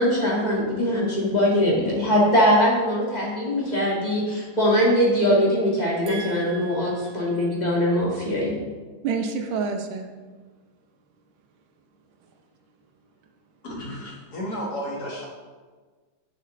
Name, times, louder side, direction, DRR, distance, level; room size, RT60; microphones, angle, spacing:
voice 1, 0.0-8.5, equal, 20° left, -4 dB, 1.8 m, -21 dB
voice 2, 6.1-7.4 9.0-10.1, right 5 dB, 75° right, 4 dB, 1.5 m, -30 dB
voice 3, 13.6-15.3, equal, 50° left, -3 dB, 2.0 m, -32 dB
10.5 x 6.6 x 3.2 m, 1.4 s
omnidirectional pair, 2.3 m